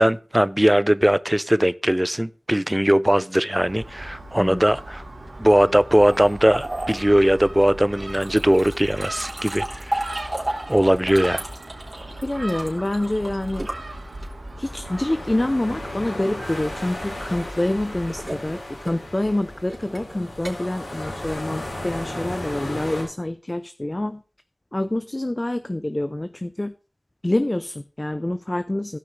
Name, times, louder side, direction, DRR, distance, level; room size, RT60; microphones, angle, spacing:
voice 1, 0.0-5.0 5.4-10.1 10.7-11.4, right 1 dB, 10° right, 0.6 m, -19 dB
Gull seagull, 3.6-18.2, right 1 dB, 70° right, 3.0 m, -38 dB
sound 1, 6.0-14.6 16.4-22.1, right 1 dB, 30° right, 3.4 m, -35 dB
voice 2, 12.2-13.7 14.6-24.2 24.7-26.7 27.2-29.0, left 1 dB, 30° left, 0.6 m, -26 dB
sound 2, 14.6-23.0, left 1 dB, 80° left, 5.6 m, -35 dB
17.0 x 5.7 x 3.2 m
wide cardioid pair, 50°, 0 cm